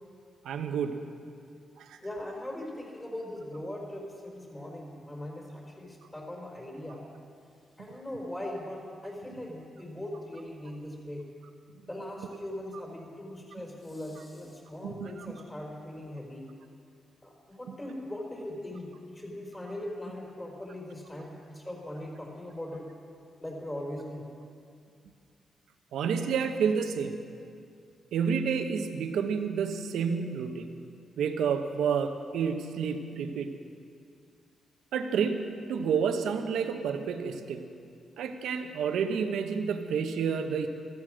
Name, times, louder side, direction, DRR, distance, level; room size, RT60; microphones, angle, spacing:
voice 1, 0.4-1.0 14.8-15.3 25.9-27.2 28.1-30.7 31.2-33.5 34.9-35.4 35.7-37.6 38.2-40.7, right 6 dB, 90° right, 7 dB, 1.0 m, -29 dB
voice 2, 2.0-7.1 7.8-11.2 11.9-16.5 17.2-22.9 23.4-24.3, left 1 dB, 20° left, -2 dB, 4.3 m, -40 dB
14.5 x 14.5 x 6.3 m, 2.4 s
cardioid pair, 95°, 0 cm